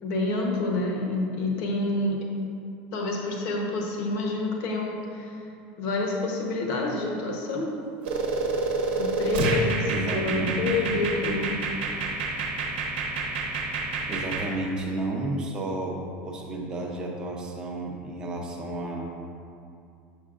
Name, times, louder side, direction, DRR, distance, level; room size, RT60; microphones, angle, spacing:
voice 1, 0.0-2.2 2.9-5.4 5.8-7.8 9.0-11.6, left 2 dB, 50° left, 0 dB, 0.9 m, -28 dB
sound 1, 8.0-14.5, right 3 dB, 85° right, 0.9 m, -28 dB
voice 2, 9.9-10.8 14.1-19.1, right 1 dB, 15° right, -1 dB, 0.6 m, -32 dB
6.7 x 6.3 x 2.5 m, 2.5 s
cardioid pair, 175°, 6 cm